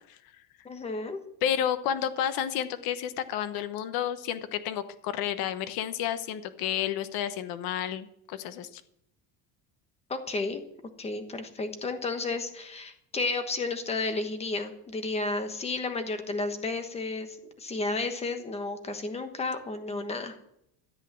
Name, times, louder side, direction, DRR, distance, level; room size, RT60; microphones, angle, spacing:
voice 1, 0.6-1.2 10.1-10.6 11.0-20.4, left 3 dB, 15° left, 7 dB, 1.2 m, -32 dB
voice 2, 1.4-8.8, left 10 dB, 60° left, 11 dB, 1.2 m, -31 dB
13.5 x 8.4 x 7.1 m, 0.77 s
cardioid pair, 170°, 40 cm